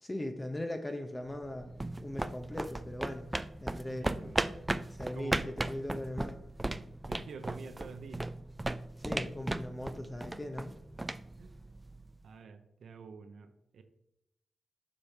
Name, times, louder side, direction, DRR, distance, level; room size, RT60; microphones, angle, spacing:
voice 1, 0.0-3.3 3.6-4.4 4.9-6.4 9.0-10.7, left 1 dB, 20° left, 5 dB, 0.7 m, -39 dB
sound 1, 1.3-12.1, right 2 dB, 20° right, 0.3 m, -37 dB
voice 2, 4.0-4.4 5.1-5.5 7.1-8.3 11.4-11.5 12.0-13.8, right 5 dB, 75° right, 9 dB, 0.6 m, -48 dB
7.3 x 4.9 x 3.3 m, 0.85 s
cardioid pair, 50°, 0 cm